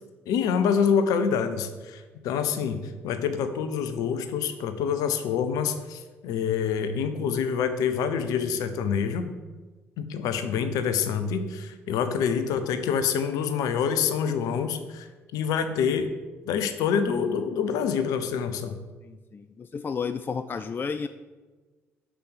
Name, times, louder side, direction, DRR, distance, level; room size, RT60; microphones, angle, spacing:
voice 1, 0.3-9.3 10.0-15.1 15.3-16.1 16.5-18.8, left 7 dB, 60° left, 9 dB, 0.7 m, -26 dB
voice 2, 19.1-21.1, left 5 dB, 30° left, 10 dB, 0.4 m, -32 dB
6.8 x 6.1 x 6.8 m, 1.3 s
figure-of-eight pair, 45°, 7 cm